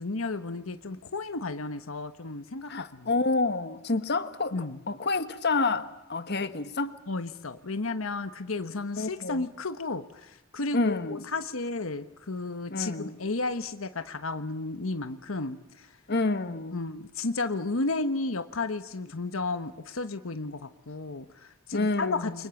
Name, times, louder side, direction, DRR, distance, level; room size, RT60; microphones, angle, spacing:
voice 1, 0.0-3.1 4.5-4.8 7.1-15.9 16.7-22.5, left 3 dB, 80° left, 1.2 m, -33 dB
voice 2, 2.7-7.0 9.0-9.4 10.7-11.2 12.7-13.2 16.1-16.8 21.7-22.4, left 3 dB, 55° left, 1.6 m, -29 dB
29.5 x 24.5 x 7.2 m
head